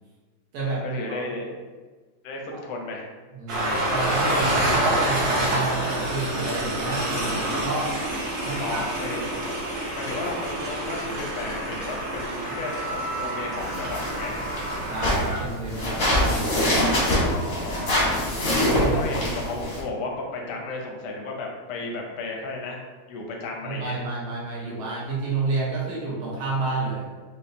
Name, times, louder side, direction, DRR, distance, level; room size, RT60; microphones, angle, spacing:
voice 1, 0.6-1.5 2.2-3.1 8.6-9.2 9.9-14.4 17.0-18.3 18.9-22.8 23.1-24.0, left 3 dB, 75° left, 0 dB, 1.0 m, -34 dB
voice 2, 3.3-7.9 8.4-8.9 14.8-16.9 17.8-18.3 18.7-19.2 23.6-27.1, right 3 dB, 80° right, -6 dB, 1.7 m, -30 dB
Train, 3.5-15.4, right 1 dB, 55° right, 1.3 m, -27 dB
sound 1, 13.6-19.8, left 1 dB, 50° left, 0.7 m, -24 dB
5.3 x 2.1 x 2.5 m, 1.4 s
omnidirectional pair, 2.3 m